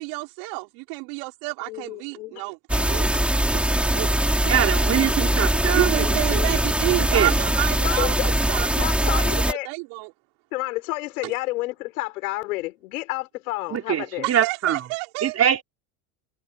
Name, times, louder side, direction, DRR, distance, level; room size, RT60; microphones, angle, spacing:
voice 1, 0.0-3.1 3.5-4.5 5.7-10.1 11.2-11.3 14.2-15.4, right 29 dB, 65° right, 5.7 m, -30 dB
voice 2, 1.7-2.4 4.0-4.2 6.0-6.5 7.8-8.3 8.7-9.7 10.5-14.3, left 19 dB, 80° left, 5.3 m, -30 dB
sound 1, 2.7-9.5, right 1 dB, 5° right, 3.5 m, -22 dB
voice 3, 4.4-6.4 7.0-7.3 13.7-14.9 15.2-15.6, right 9 dB, 35° right, 4.8 m, -23 dB
supercardioid pair, 120°, 43 cm